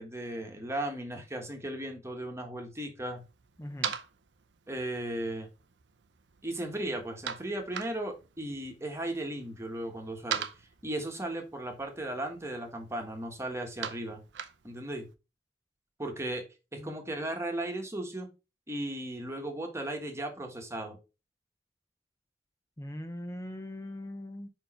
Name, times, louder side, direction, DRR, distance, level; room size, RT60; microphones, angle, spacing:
voice 1, 0.0-3.2 4.7-5.5 6.4-10.5 10.8-14.2 14.6-15.1 16.0-16.4 16.7-18.3 18.7-21.0, right 1 dB, 15° right, 1.4 m, -36 dB
sound 1, 3.2-15.1, right 7 dB, 90° right, 0.7 m, -43 dB
voice 2, 3.6-4.0 16.8-16.9 22.8-24.5, left 1 dB, 15° left, 0.6 m, -40 dB
5.2 x 4.6 x 4.3 m
head